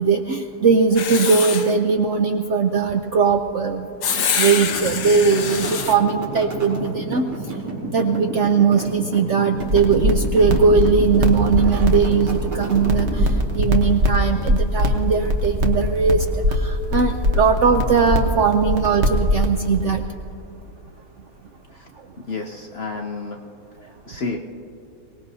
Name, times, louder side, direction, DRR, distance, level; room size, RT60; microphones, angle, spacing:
voice 1, 0.0-7.2 7.9-20.0, right 5 dB, 70° right, 6 dB, 0.7 m, -19 dB
Writing, 1.0-1.7 4.0-6.0, left 6 dB, 70° left, 1.5 m, -25 dB
sound 1, 4.5-13.5, right 2 dB, 85° right, 3.1 m, -31 dB
sound 2, 9.6-20.0, equal, 45° right, 1.2 m, -22 dB
voice 2, 22.2-23.4 23.8-24.4, left 4 dB, 55° left, 3 dB, 0.7 m, -31 dB
23.5 x 19.0 x 2.7 m, 2.7 s
omnidirectional pair, 1.8 m